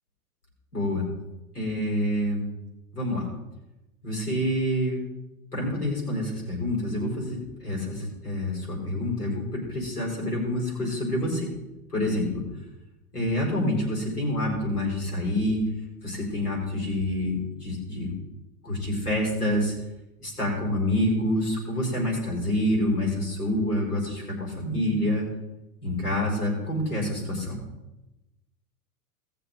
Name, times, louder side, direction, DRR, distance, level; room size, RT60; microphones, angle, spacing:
voice 1, 0.7-1.1 1.5-2.5 2.9-3.3 4.0-5.0 5.5-11.5 11.9-12.4 13.1-15.6 16.0-18.1 18.6-19.7 20.2-25.2 25.8-27.6, left 1 dB, 85° left, -4 dB, 5.0 m, -27 dB
18.5 x 6.7 x 3.9 m, 0.97 s
figure-of-eight pair, 90°, 44 cm